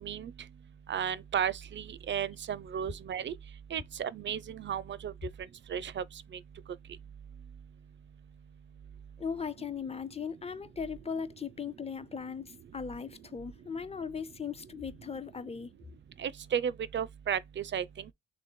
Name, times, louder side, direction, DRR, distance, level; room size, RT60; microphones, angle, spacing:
voice 1, 0.0-0.3 0.9-3.3 3.7-5.1 5.7-6.0 16.2-17.8, right 8 dB, 40° right, 0.4 m, -33 dB
voice 2, 9.2-15.7, left 6 dB, 20° left, 0.5 m, -38 dB
3.2 x 3.1 x 4.1 m
cardioid pair, 90°, 30 cm